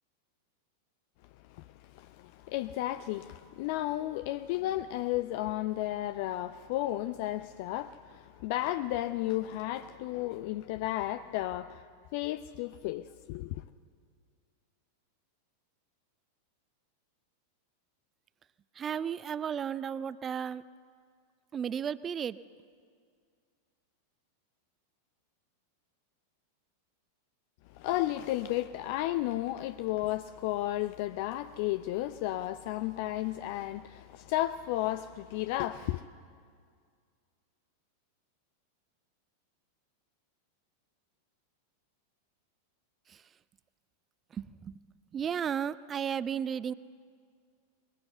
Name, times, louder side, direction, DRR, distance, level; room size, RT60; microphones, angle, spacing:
voice 1, 1.5-11.8 12.1-13.6 27.7-36.1, left 15 dB, 50° left, 0.5 m, -33 dB
voice 2, 18.8-20.6 21.5-22.4 43.1-43.2 44.3-44.8 45.1-46.7, right 8 dB, 25° right, 0.5 m, -34 dB
23.0 x 21.5 x 7.9 m
figure-of-eight pair, 90°, 0 cm